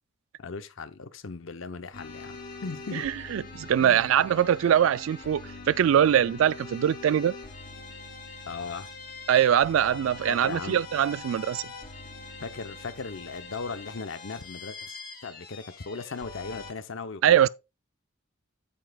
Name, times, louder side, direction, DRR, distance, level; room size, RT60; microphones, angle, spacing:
voice 1, 0.4-3.1 3.8-4.2 8.5-8.9 10.3-10.8 12.4-15.0 15.2-17.5, left 4 dB, 70° left, 0.8 m, -38 dB
sound 1, 1.9-16.7, left 3 dB, 45° left, 2.5 m, -43 dB
voice 2, 2.9-7.4 9.3-11.6 17.2-17.5, right 9 dB, 70° right, 0.3 m, -23 dB
8.6 x 8.0 x 2.3 m
head